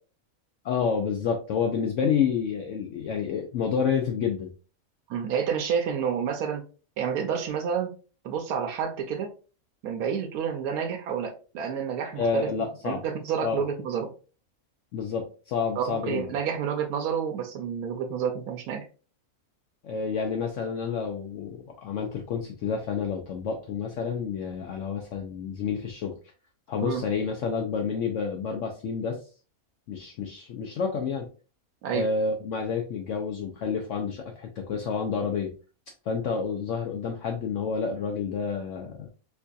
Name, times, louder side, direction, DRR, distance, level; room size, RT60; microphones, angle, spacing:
voice 1, 0.6-4.5 12.2-13.0 13.4-13.6 14.9-16.3 19.8-26.1 26.7-29.2 29.9-31.3 31.9-35.5 36.1-39.1, left 6 dB, 65° left, 2 dB, 0.8 m, -29 dB
voice 2, 5.1-6.6 7.0-7.9 8.2-9.3 9.8-12.5 12.8-14.1 15.8-18.8 26.8-27.0 31.8-32.1, right 7 dB, 85° right, 4 dB, 1.1 m, -29 dB
4.4 x 2.7 x 2.3 m, 0.36 s
omnidirectional pair, 1.5 m